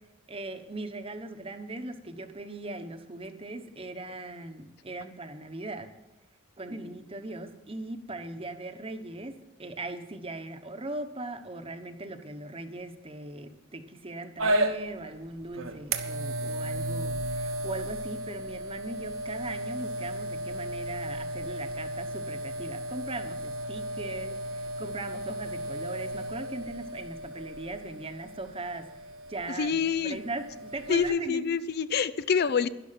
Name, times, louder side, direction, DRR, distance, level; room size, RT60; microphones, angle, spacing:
voice 1, 0.3-5.9 6.6-28.9 29.3-31.5, right 2 dB, 25° right, 7 dB, 1.0 m, -39 dB
sound 1, 14.4-31.1, right 1 dB, 70° right, 1.2 m, -34 dB
voice 2, 29.6-30.2 30.9-32.7, left 6 dB, 45° left, 14 dB, 0.4 m, -26 dB
12.0 x 11.5 x 5.8 m, 1.0 s
head